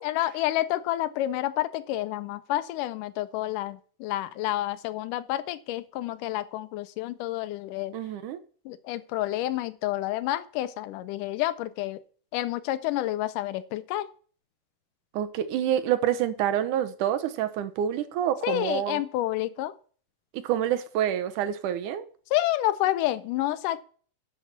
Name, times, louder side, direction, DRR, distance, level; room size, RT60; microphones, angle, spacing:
voice 1, 0.0-7.9 8.7-12.0 12.3-14.1 18.4-19.7 22.3-23.8, left 14 dB, 90° left, 2.2 m, -29 dB
voice 2, 7.9-8.4 15.1-19.0 20.3-22.0, right 10 dB, 80° right, 2.4 m, -27 dB
11.5 x 5.8 x 5.8 m
omnidirectional pair, 3.6 m